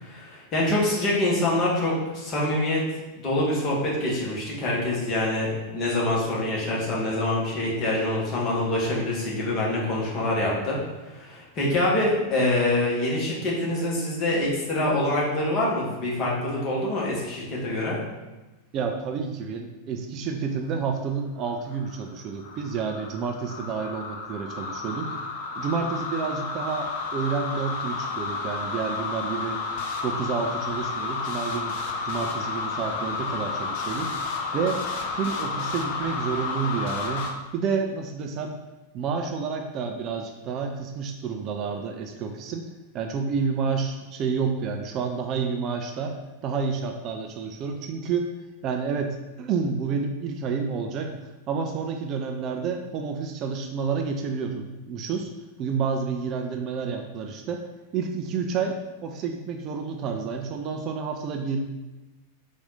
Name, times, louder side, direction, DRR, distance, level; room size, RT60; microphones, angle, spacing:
voice 1, 0.0-2.8 3.1-10.8 11.0-18.0, left 1 dB, 35° left, -4 dB, 1.4 m, -25 dB
voice 2, 18.7-25.1 25.6-29.6 30.0-31.8 32.0-34.8 35.1-37.3 37.5-38.6 38.9-42.7 42.9-48.3 48.6-51.1 51.5-55.3 55.6-57.6 57.9-58.8 59.0-61.6, right 5 dB, 35° right, 4 dB, 0.4 m, -29 dB
sound 1, 21.4-37.3, left 4 dB, 50° left, 0.5 m, -31 dB
4.1 x 2.5 x 4.1 m, 1.1 s
figure-of-eight pair, 90°, 0 cm